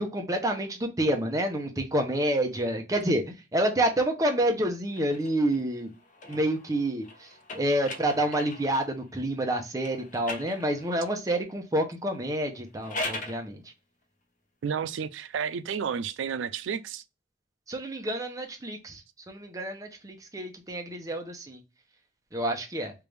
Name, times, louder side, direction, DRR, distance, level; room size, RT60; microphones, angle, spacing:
voice 1, 0.0-5.9 6.3-7.1 7.5-13.6 17.7-19.0 19.3-21.6 22.3-22.9, right 1 dB, 20° right, 0.7 m, -28 dB
sound 1, 4.9-8.9 9.8-11.2 12.6-13.4, left 2 dB, 45° left, 0.6 m, -40 dB
voice 2, 14.6-17.0, right 7 dB, 90° right, 0.4 m, -31 dB
3.3 x 2.5 x 3.2 m
head